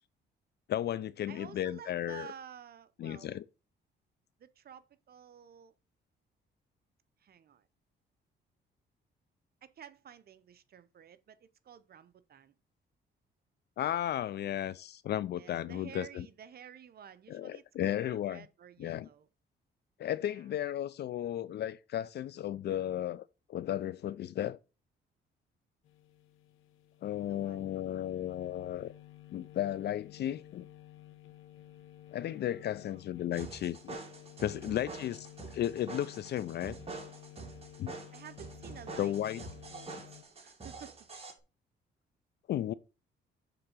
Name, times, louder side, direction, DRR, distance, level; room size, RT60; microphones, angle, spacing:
voice 1, 0.7-2.3 3.0-3.4 13.8-16.3 17.3-18.5 18.8-19.1 20.0-23.2 23.5-24.6 27.0-28.9 29.3-30.7 32.1-34.0 34.4-35.3 35.5-36.8 37.8-37.9 39.0-39.4 42.5-42.7, left 11 dB, 60° left, 0.4 m, -34 dB
voice 2, 1.3-3.4 4.4-5.7 7.2-7.7 9.6-12.5 15.3-19.3 20.2-20.5 27.3-27.6 32.2-33.1 34.4-34.9 38.1-40.9, right 9 dB, 50° right, 0.7 m, -52 dB
sound 1, 25.8-40.2, left 13 dB, 85° left, 0.9 m, -53 dB
sound 2, 33.3-41.3, right 3 dB, 30° right, 1.9 m, -46 dB
6.8 x 3.8 x 5.6 m
cardioid pair, 90°, 20 cm